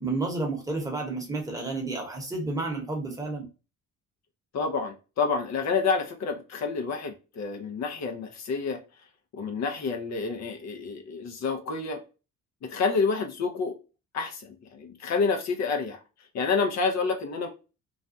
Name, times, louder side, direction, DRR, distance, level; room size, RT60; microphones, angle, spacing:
voice 1, 0.0-3.5, right 3 dB, 10° right, 0.9 m, -31 dB
voice 2, 4.5-8.8 9.4-12.0 12.6-13.7 14.1-16.0 16.3-17.5, left 4 dB, 60° left, 0.6 m, -28 dB
2.5 x 2.1 x 2.5 m
cardioid pair, 90°, 30 cm